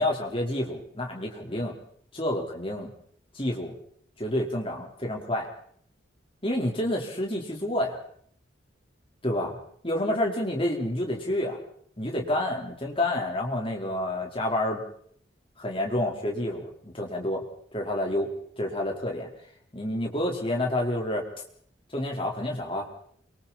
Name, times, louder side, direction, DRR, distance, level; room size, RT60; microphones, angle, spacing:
voice 1, 0.0-1.8 2.1-2.9 3.3-3.7 4.2-5.5 6.4-8.0 9.2-9.6 9.8-11.6 12.0-14.8 15.6-17.4 17.7-18.3 18.6-19.3 19.7-21.3 21.9-22.9, left 1 dB, 25° left, 0 dB, 4.5 m, -29 dB
28.5 x 24.5 x 4.4 m, 0.63 s
head